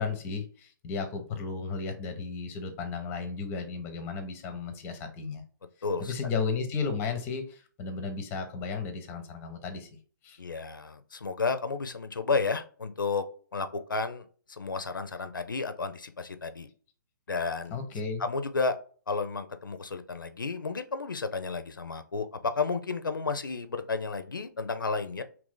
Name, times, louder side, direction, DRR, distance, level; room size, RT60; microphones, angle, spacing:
voice 1, 0.0-5.4 6.0-9.9 10.2-10.4 17.7-18.2, left 5 dB, 20° left, 8 dB, 0.6 m, -34 dB
voice 2, 5.8-6.3 10.4-13.3 13.5-16.7 17.3-17.8 18.2-18.8 19.1-25.2, left 4 dB, 80° left, 10 dB, 0.4 m, -32 dB
2.8 x 2.6 x 3.6 m, 0.42 s
figure-of-eight pair, 125°, 11 cm